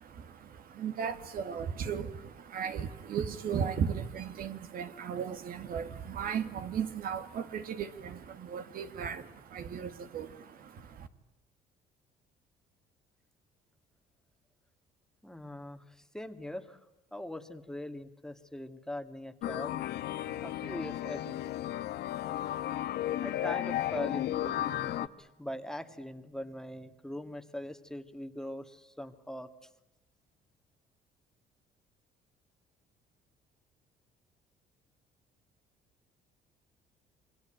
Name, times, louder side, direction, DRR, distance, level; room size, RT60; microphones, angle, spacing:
voice 1, 0.0-11.1, right 7 dB, 60° right, 10 dB, 2.0 m, -36 dB
voice 2, 15.2-16.8 17.1-19.8 20.4-21.4 23.2-29.5, left 1 dB, 5° left, 7 dB, 1.8 m, -41 dB
sound 1, 19.4-25.1, left 13 dB, 75° left, 1.1 m, -34 dB
28.0 x 23.5 x 8.9 m, 0.95 s
cardioid pair, 110°, 17 cm